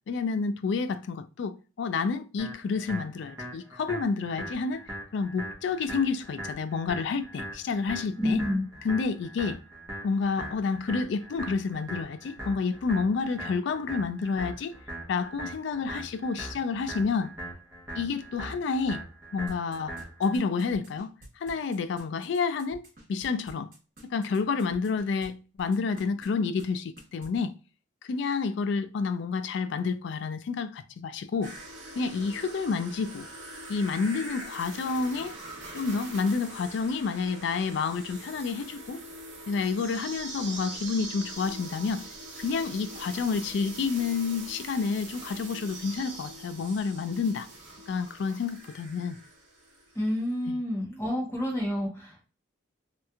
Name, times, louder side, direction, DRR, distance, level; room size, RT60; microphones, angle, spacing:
voice 1, 0.1-4.8 5.1-8.4 8.8-9.6 10.0-14.7 15.1-17.3 18.0-19.0 19.3-21.1 21.4-23.7 24.1-27.5 28.1-31.5 32.0-33.3 33.7-35.3 35.7-39.0 39.5-42.0 42.4-47.5 47.9-49.2 50.5-50.6, left 4 dB, 60° left, 0.3 m, -29 dB
sound 1, 2.4-20.4, right 1 dB, 15° right, 1.0 m, -41 dB
voice 2, 8.2-8.6 49.9-52.3, left 1 dB, 15° left, 1.1 m, -29 dB
sound 2, 19.5-25.3 25.6-26.3 26.6-26.7 27.0-27.4, right 1 dB, 45° right, 1.2 m, -50 dB
sound 3, 31.4-49.9 50.2-50.3, right 2 dB, 65° right, 0.9 m, -43 dB
3.2 x 2.9 x 2.3 m
head